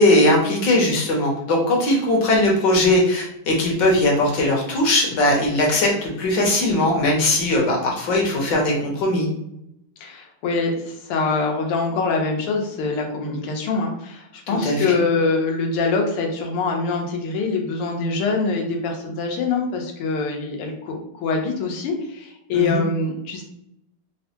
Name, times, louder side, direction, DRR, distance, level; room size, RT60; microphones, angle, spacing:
voice 1, 0.0-9.3 14.6-14.9 22.5-22.8, left 1 dB, 65° left, -1 dB, 1.4 m, -19 dB
voice 2, 10.0-23.4, left 4 dB, 90° left, 2 dB, 1.7 m, -24 dB
4.1 x 2.1 x 2.7 m, 0.79 s
omnidirectional pair, 2.4 m